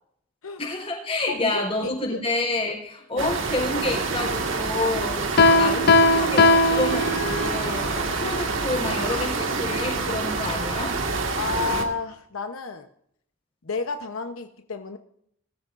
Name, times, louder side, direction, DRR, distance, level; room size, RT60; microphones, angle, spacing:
voice 1, 0.6-5.2 5.5-11.0, left 2 dB, 30° left, 1 dB, 4.4 m, -29 dB
voice 2, 1.3-2.2 3.1-3.3 8.2-8.4 11.3-12.9 13.6-15.0, left 4 dB, 80° left, 6 dB, 0.9 m, -31 dB
sound 1, 3.2-11.8, right 3 dB, 65° right, 1.9 m, -27 dB
Piano, 5.4-7.7, left 2 dB, 50° left, 0.6 m, -18 dB
21.5 x 13.0 x 2.6 m, 0.69 s
head